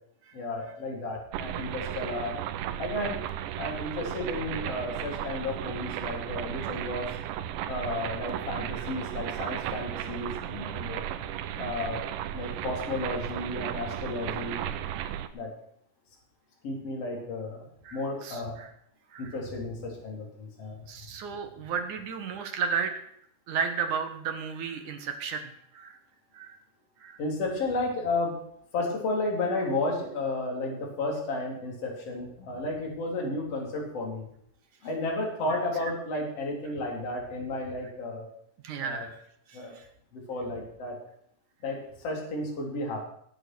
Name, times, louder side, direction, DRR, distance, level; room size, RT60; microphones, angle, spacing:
voice 1, 0.3-2.4 2.8-3.2 3.6-7.1 7.7-11.0 11.6-12.0 12.3-14.6 15.3-15.5 16.6-18.6 19.2-20.8 27.2-28.3 28.7-34.3 34.8-38.2 38.8-39.1 39.5-39.7 40.1-41.0 41.6-43.1, left 2 dB, 35° left, -1 dB, 4.3 m, -33 dB
sound 1, 1.3-15.3, right 11 dB, 80° right, 2.9 m, -35 dB
voice 2, 17.8-18.7 19.1-19.3 20.9-22.9 23.5-26.0 26.3-26.6 27.0-27.2 38.6-39.2 39.5-39.9, right 6 dB, 60° right, 5 dB, 2.3 m, -34 dB
20.0 x 8.0 x 6.3 m, 0.69 s
omnidirectional pair, 5.1 m